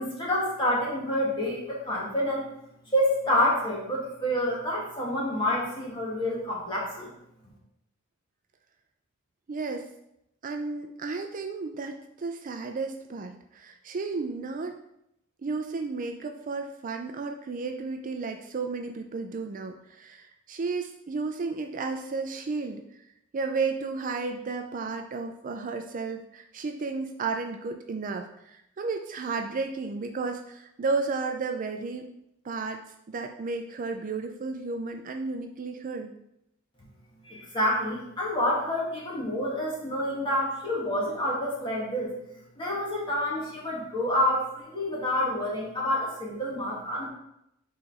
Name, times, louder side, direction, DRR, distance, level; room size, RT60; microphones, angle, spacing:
voice 1, 0.0-2.5 2.9-7.1 37.2-42.1 42.6-47.1, left 1 dB, 25° left, -5 dB, 2.0 m, -28 dB
voice 2, 9.5-9.9 10.4-14.8 15.4-22.8 23.3-32.1 32.4-32.8 33.1-36.1, right 4 dB, 40° right, 5 dB, 0.4 m, -33 dB
4.9 x 4.0 x 4.8 m, 0.80 s
head